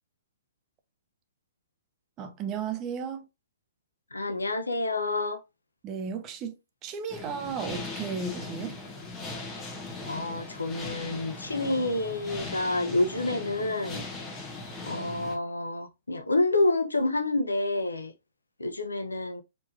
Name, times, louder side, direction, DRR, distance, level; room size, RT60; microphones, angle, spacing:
voice 1, 2.2-3.3 5.8-6.6 6.8-8.8, right 6 dB, 25° right, 0.8 m, -34 dB
voice 2, 4.1-5.4 10.1-14.0 14.8-18.1 18.6-19.4, left 2 dB, 75° left, 0.9 m, -28 dB
sound 1, 7.1-15.4, left 3 dB, 15° left, 1.6 m, -39 dB
4.7 x 4.4 x 2.5 m
figure-of-eight pair, 115°, 0 cm